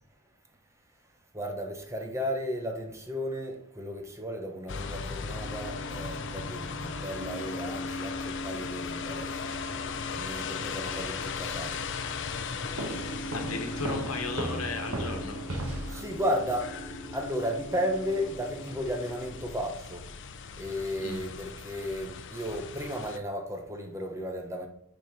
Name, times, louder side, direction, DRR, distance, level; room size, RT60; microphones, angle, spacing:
voice 1, 1.3-9.6 10.1-11.8 15.9-16.7 17.1-20.0 20.6-24.7, equal, 15° right, 3 dB, 0.9 m, -34 dB
sound 1, 4.7-23.2, left 5 dB, 60° left, 0.6 m, -38 dB
sound 2, 5.4-19.5, equal, 20° left, 2.7 m, -42 dB
sound 3, 12.8-16.5, right 1 dB, 80° right, 1.2 m, -36 dB
voice 2, 13.3-15.4 21.0-21.3, left 3 dB, 75° left, 4 dB, 1.3 m, -35 dB
6.1 x 4.5 x 5.1 m, 0.68 s
head